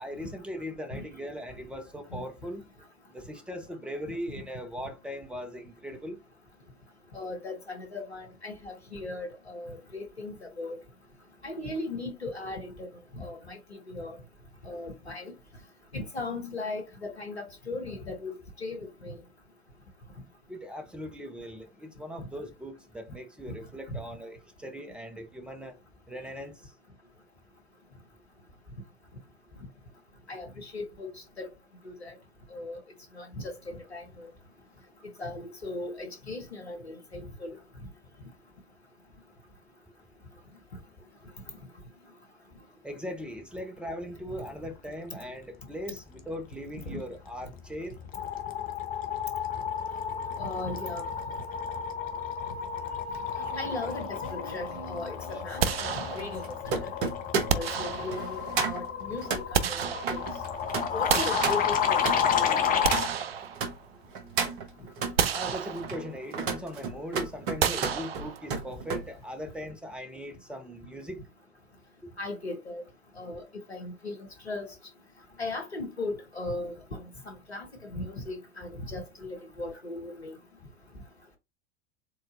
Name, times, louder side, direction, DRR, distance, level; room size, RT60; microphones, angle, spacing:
voice 1, 0.0-2.6 3.1-6.2 20.5-25.8 26.1-26.7 42.8-48.0 65.3-71.3, equal, 5° right, 0.8 m, -39 dB
voice 2, 7.1-10.8 11.4-12.9 13.1-14.1 14.6-15.3 15.9-19.2 23.9-24.0 30.3-31.5 31.8-32.2 32.5-32.8 33.1-34.3 35.2-37.6 46.9-47.0 50.4-51.0 53.6-56.9 57.5-60.2 60.9-62.6 72.2-72.8 73.2-73.4 73.7-74.7 75.4-77.7 77.9-80.3, left 2 dB, 85° left, 1.2 m, -38 dB
sound 1, 47.3-47.6 47.9-63.1, left 7 dB, 25° left, 0.9 m, -31 dB
sound 2, 53.1-63.7 64.1-65.2 65.7-69.1 69.4-69.7, right 5 dB, 55° right, 1.1 m, -34 dB
sound 3, 55.6-56.6 57.5-58.5 59.2-60.5 61.1-62.2 62.6-64.1 64.5-64.6 65.2-66.2 67.6-68.7, right 7 dB, 70° right, 0.6 m, -31 dB
4.5 x 3.8 x 2.5 m
figure-of-eight pair, 85°, 31 cm